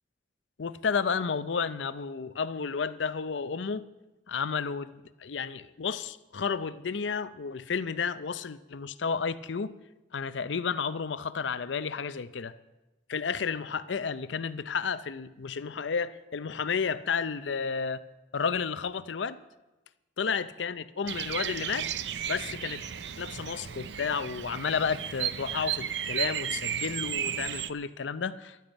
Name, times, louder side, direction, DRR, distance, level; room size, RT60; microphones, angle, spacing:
voice 1, 0.6-3.8 4.3-9.7 10.1-12.5 13.1-18.0 18.3-19.4 20.2-21.9 22.2-22.9 23.2-28.7, left 5 dB, 80° left, 15 dB, 0.6 m, -32 dB
Bird vocalization bird call bird song, 21.1-27.7, right 9 dB, 70° right, 0.5 m, -34 dB
15.5 x 12.0 x 5.3 m, 1.0 s
head